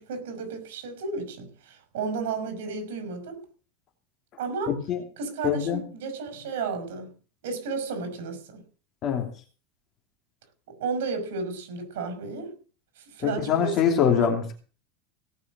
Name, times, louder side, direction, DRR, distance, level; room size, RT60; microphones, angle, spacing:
voice 1, 0.0-3.4 4.4-4.8 5.2-7.1 7.4-8.6 10.8-12.5 13.1-14.3, right 4 dB, 85° right, 5.6 m, -33 dB
voice 2, 4.7-5.0 5.4-5.8 9.0-9.3 13.2-14.5, left 8 dB, 30° left, 2.8 m, -24 dB
17.5 x 6.2 x 7.5 m
supercardioid pair, 180°, 0 cm